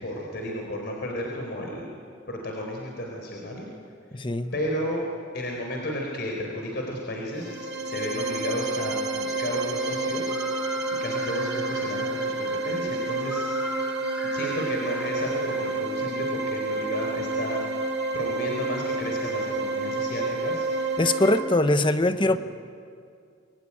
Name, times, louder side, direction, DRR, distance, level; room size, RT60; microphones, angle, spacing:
voice 1, 0.0-1.9 2.3-3.7 4.5-5.1 5.3-10.7 11.0-13.8 14.3-17.6 18.1-20.7 22.3-22.4, left 1 dB, 60° left, 0 dB, 4.4 m, -33 dB
voice 2, 4.1-4.5 21.0-22.4, left 2 dB, 25° left, 10 dB, 1.0 m, -22 dB
sound 1, 7.3-21.4, right 2 dB, 60° right, 2.7 m, -29 dB
sound 2, 10.2-16.0, right 1 dB, 5° right, 1.9 m, -39 dB
26.0 x 22.5 x 10.0 m, 2.3 s
head